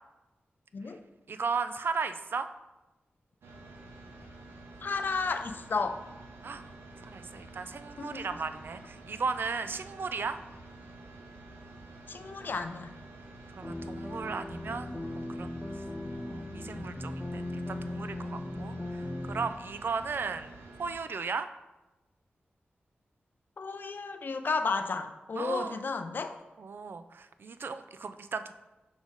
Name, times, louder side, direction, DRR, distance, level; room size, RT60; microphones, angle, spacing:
voice 1, 1.3-2.5 6.4-6.6 7.0-10.4 13.6-15.6 16.3-21.5 25.4-25.8 26.6-28.5, right 5 dB, 65° right, 10 dB, 0.4 m, -36 dB
sound 1, 3.4-20.9, right 2 dB, 90° right, 0.9 m, -49 dB
voice 2, 4.8-6.0 8.0-8.3 12.1-12.9 23.6-26.4, left 4 dB, 55° left, 7 dB, 0.5 m, -33 dB
sound 2, 13.6-19.5, left 1 dB, 15° left, 0.6 m, -38 dB
5.1 x 4.7 x 4.0 m, 1.0 s
wide cardioid pair, 85°, 4 cm